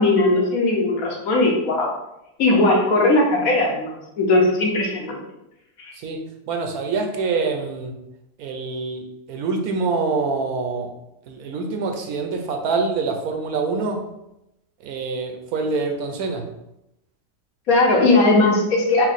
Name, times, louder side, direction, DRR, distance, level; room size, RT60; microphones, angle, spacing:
voice 1, 0.0-1.9 2.4-5.2 5.8-5.9 17.7-19.0, left 2 dB, 65° left, -1 dB, 1.1 m, -18 dB
voice 2, 5.9-7.9 8.4-10.9 11.3-14.0 14.8-16.5, right 4 dB, 75° right, 4 dB, 1.0 m, -25 dB
4.5 x 2.0 x 4.0 m, 0.86 s
omnidirectional pair, 1.7 m